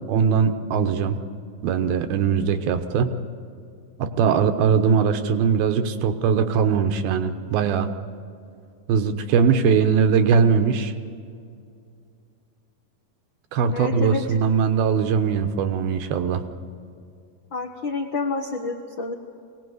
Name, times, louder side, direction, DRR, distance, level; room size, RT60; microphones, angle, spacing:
voice 1, 0.1-1.2 1.6-3.1 4.0-7.9 8.9-10.9 13.5-16.4, right 6 dB, 80° right, 8 dB, 2.9 m, -21 dB
voice 2, 13.7-14.4 17.5-19.1, left 3 dB, 75° left, 2 dB, 1.1 m, -28 dB
23.5 x 18.5 x 7.9 m, 2.4 s
omnidirectional pair, 4.4 m